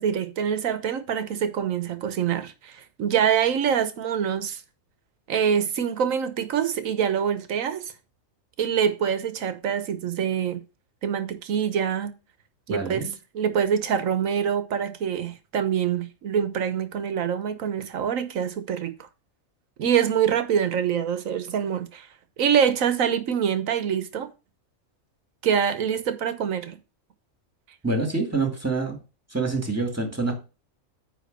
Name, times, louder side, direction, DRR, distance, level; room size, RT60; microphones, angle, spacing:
voice 1, 0.0-4.6 5.3-7.9 8.6-10.6 11.0-12.1 12.7-18.9 19.8-22.1 22.4-24.3 25.4-26.8, right 8 dB, 75° right, 1.4 m, -25 dB
voice 2, 12.7-13.1 27.8-29.0 29.3-30.4, right 3 dB, 10° right, 2.1 m, -26 dB
9.5 x 3.7 x 6.6 m
omnidirectional pair, 1.4 m